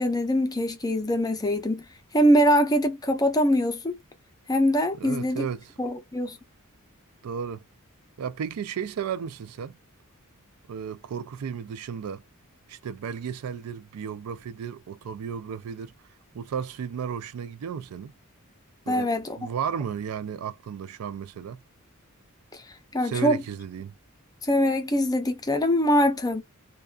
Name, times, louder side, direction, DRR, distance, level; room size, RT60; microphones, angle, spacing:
voice 1, 0.0-1.8 2.1-3.9 4.5-5.5 5.8-6.4 18.9-19.4 22.5-22.6 22.9-23.4 24.4-26.4, equal, 15° left, 0.6 m, -23 dB
voice 2, 5.0-5.7 7.2-7.6 8.2-9.8 10.7-12.2 12.7-15.9 16.3-18.1 18.9-21.6 23.0-23.9, right 7 dB, 85° right, 0.4 m, -34 dB
2.4 x 2.3 x 2.3 m
head